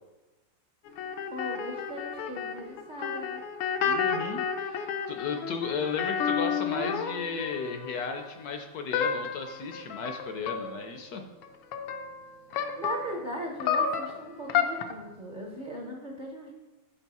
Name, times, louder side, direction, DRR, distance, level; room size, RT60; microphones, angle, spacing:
sound 1, 0.9-8.3 8.9-11.0 11.4-13.2 13.6-14.9, left 7 dB, 90° left, 1.4 m, -31 dB
voice 1, 1.3-3.4 12.8-16.5, equal, 60° right, 0 dB, 0.5 m, -38 dB
voice 2, 3.8-11.2, left 5 dB, 70° left, 5 dB, 0.9 m, -35 dB
7.1 x 4.7 x 4.1 m, 1.1 s
omnidirectional pair, 2.1 m